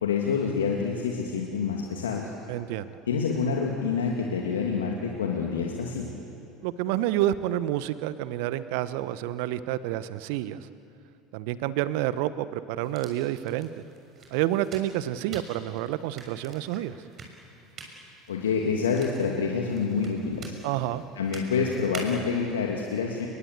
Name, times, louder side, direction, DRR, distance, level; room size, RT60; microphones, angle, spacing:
voice 1, 0.0-2.3 3.1-6.1 18.3-20.5 21.2-23.3, left 5 dB, 80° left, 0 dB, 2.5 m, -27 dB
voice 2, 2.5-2.9 6.6-10.7 11.3-13.8 14.3-17.0 20.6-21.0, right 13 dB, 65° right, 14 dB, 1.0 m, -29 dB
sound 1, 12.8-22.4, right 4 dB, 40° right, 6.5 m, -46 dB
30.0 x 23.0 x 8.3 m, 2.7 s
figure-of-eight pair, 70°, 0 cm